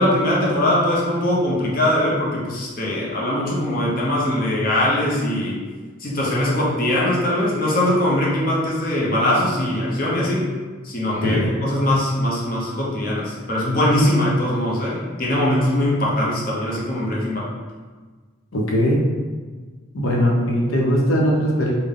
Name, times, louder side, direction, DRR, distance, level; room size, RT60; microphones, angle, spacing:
voice 1, 0.0-5.6 6.0-10.5 10.8-17.5, left 1 dB, 45° left, -5 dB, 0.7 m, -21 dB
voice 2, 11.1-11.5 18.5-19.0 19.9-21.7, equal, 90° left, -2 dB, 0.7 m, -20 dB
3.7 x 2.1 x 3.7 m, 1.4 s
head